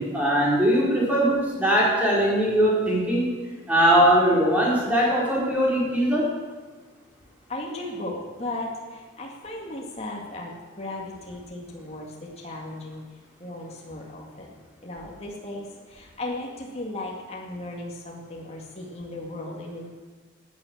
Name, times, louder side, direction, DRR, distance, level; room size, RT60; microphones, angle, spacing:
voice 1, 0.0-3.3 3.7-6.3, equal, 5° right, -5 dB, 4.6 m, -21 dB
voice 2, 7.5-13.0 13.4-14.5 14.8-19.9, left 1 dB, 30° left, -2 dB, 2.2 m, -36 dB
13.5 x 10.5 x 8.7 m, 1.4 s
head